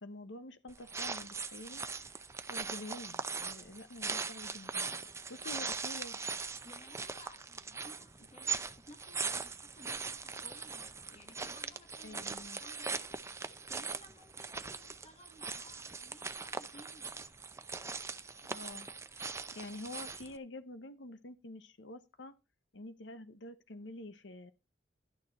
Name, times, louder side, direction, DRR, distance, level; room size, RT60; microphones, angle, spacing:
voice 1, 0.0-1.8 2.5-4.9 5.3-6.2 12.0-12.6 18.4-18.9 19.1-22.3 22.7-24.5, left 2 dB, 70° left, 1.1 m, -47 dB
sound 1, 0.7-20.4, right 4 dB, 15° right, 0.6 m, -41 dB
voice 2, 6.6-13.1 13.3-17.3, left 1 dB, 35° left, 1.6 m, -58 dB
12.0 x 6.6 x 4.2 m
head